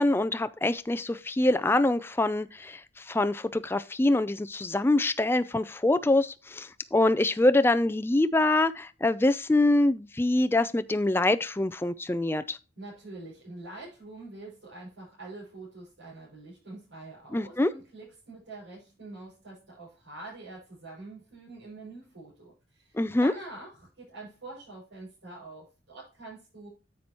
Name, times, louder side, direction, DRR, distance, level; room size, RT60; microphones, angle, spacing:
voice 1, 0.0-12.6 17.3-17.7 22.9-23.3, left 2 dB, 10° left, 0.3 m, -25 dB
voice 2, 12.8-26.7, right 2 dB, 80° right, 5.7 m, -45 dB
9.6 x 7.7 x 2.9 m
head